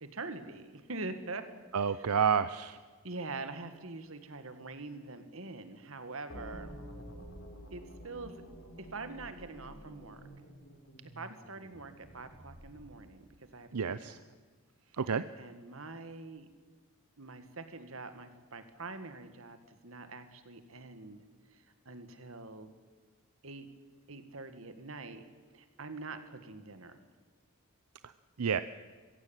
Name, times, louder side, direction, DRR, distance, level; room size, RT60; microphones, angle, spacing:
voice 1, 0.0-1.5 1.8-2.2 3.0-6.7 7.7-8.4 8.8-10.2 11.2-14.2 15.4-16.5 17.2-21.2 21.5-22.7 23.4-23.7 24.1-25.3 25.5-27.0, right 3 dB, 65° right, 9 dB, 1.8 m, -44 dB
voice 2, 1.7-2.8 13.7-14.2 15.0-15.2 28.4-28.6, right 6 dB, 90° right, 13 dB, 0.6 m, -29 dB
sound 1, 6.3-13.2, equal, 60° left, 3.6 m, -50 dB
23.0 x 16.0 x 8.9 m, 1.4 s
head